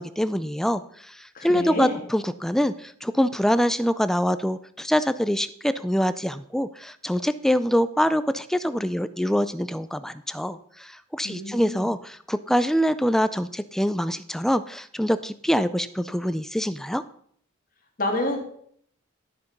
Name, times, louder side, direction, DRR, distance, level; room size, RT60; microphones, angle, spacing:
voice 1, 0.0-17.0, equal, ahead, 12 dB, 0.3 m, -25 dB
voice 2, 1.4-2.0 11.2-11.9 18.0-18.4, left 1 dB, 45° left, 2 dB, 2.0 m, -28 dB
12.0 x 6.8 x 5.3 m, 0.63 s
head